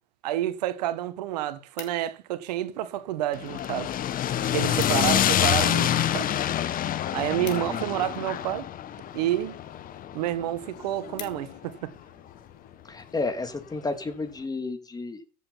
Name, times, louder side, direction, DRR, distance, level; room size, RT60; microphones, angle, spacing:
voice 1, 0.2-3.9 4.5-6.3 7.0-8.7 9.1-9.6 10.1-11.9, right 13 dB, 75° right, 1.5 m, -29 dB
sound 1, 1.2-2.4 3.1-3.6 3.9-4.0 4.3-4.4 4.6-5.2 5.6-8.4 9.1-9.5 10.0-10.1 10.4-10.5 10.8-11.8 12.3-12.5, left 9 dB, 85° left, 3.1 m, -46 dB
sound 2, 3.3-11.6, left 11 dB, 40° left, 1.3 m, -27 dB
sound 3, 3.8-13.5, left 6 dB, 65° left, 3.3 m, -52 dB
voice 2, 7.3-7.8 12.9-15.2, left 3 dB, 20° left, 2.6 m, -32 dB
15.0 x 7.8 x 5.7 m
hypercardioid pair, 80°, 21 cm